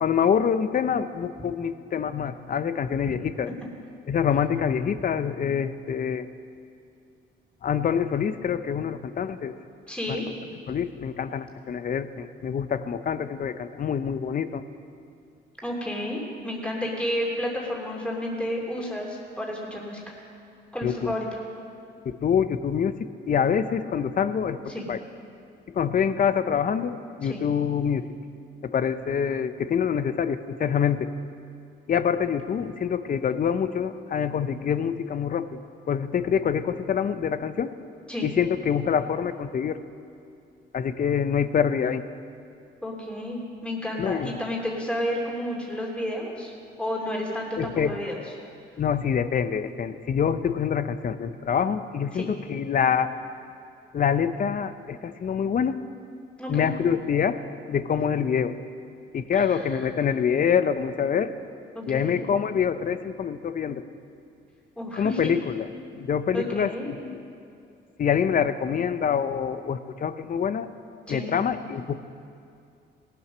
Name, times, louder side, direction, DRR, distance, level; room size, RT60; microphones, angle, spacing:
voice 1, 0.0-3.5 4.1-6.3 7.6-9.5 10.1-10.2 10.7-14.6 20.8-21.1 22.0-23.0 23.3-24.6 24.9-25.0 25.7-28.1 28.6-31.1 31.9-35.6 35.9-37.7 38.2-39.8 40.7-42.1 44.0-44.4 47.6-48.0 48.8-53.1 53.9-55.8 56.5-57.4 57.7-58.5 59.1-61.3 61.9-63.8 64.9-65.7 65.9-67.2 68.0-70.7 71.1-72.0, left 7 dB, 45° left, 12 dB, 0.7 m, -25 dB
voice 2, 9.9-10.3 15.6-20.1 20.7-21.4 24.7-24.9 27.2-27.4 38.1-38.3 42.8-46.5 46.8-48.2 52.1-52.3 56.4-56.7 59.3-59.9 61.7-62.2 64.8-65.3 66.3-66.9 71.1-71.3, left 1 dB, 5° left, -2 dB, 2.7 m, -31 dB
17.5 x 7.8 x 6.1 m, 2.5 s
cardioid pair, 90°, 20 cm